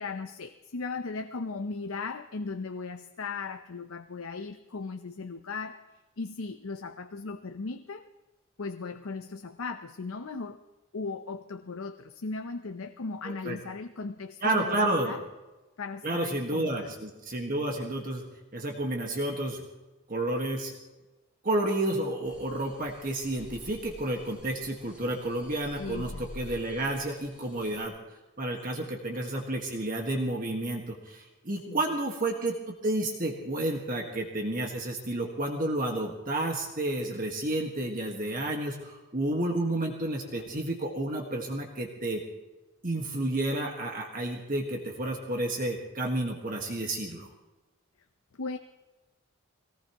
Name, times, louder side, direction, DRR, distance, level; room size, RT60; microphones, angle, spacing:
voice 1, 0.0-5.8 6.2-8.1 8.6-10.6 10.9-15.2 15.8-16.9 25.8-26.3 28.8-29.0 31.7-31.8 48.4-48.6, left 4 dB, 75° left, 7 dB, 0.7 m, -37 dB
voice 2, 14.4-15.2 16.0-18.2 18.5-19.6 20.1-20.7 21.4-27.9 28.4-42.2 42.8-47.3, right 1 dB, 40° right, 1 dB, 1.6 m, -31 dB
sound 1, 22.2-27.8, left 1 dB, 5° right, 2.5 m, -48 dB
23.0 x 18.0 x 3.0 m, 1.1 s
head